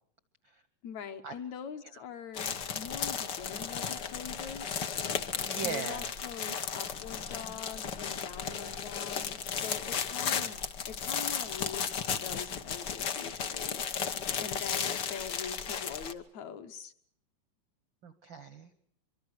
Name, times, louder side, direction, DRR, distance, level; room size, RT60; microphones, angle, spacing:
voice 1, 0.8-4.8 5.6-13.8 14.4-16.9, left 7 dB, 65° left, 7 dB, 2.2 m, -43 dB
sound 1, 2.3-16.1, left 7 dB, 85° left, 0.9 m, -35 dB
voice 2, 5.4-6.1 6.4-6.6 7.5-7.6 18.0-18.8, right 6 dB, 65° right, 12 dB, 1.1 m, -40 dB
24.5 x 24.0 x 6.5 m, 0.63 s
omnidirectional pair, 3.8 m